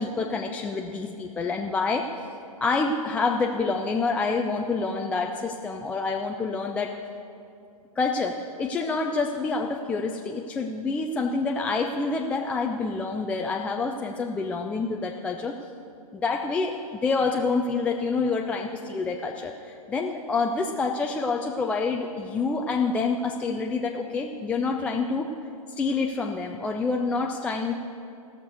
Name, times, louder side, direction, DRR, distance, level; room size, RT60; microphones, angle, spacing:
voice 1, 0.0-2.0 2.6-6.9 8.0-15.6 16.1-16.8 17.0-25.3 25.8-27.8, left 4 dB, 5° left, 1 dB, 0.3 m, -27 dB
16.5 x 6.6 x 6.6 m, 2.5 s
figure-of-eight pair, 110°, 19 cm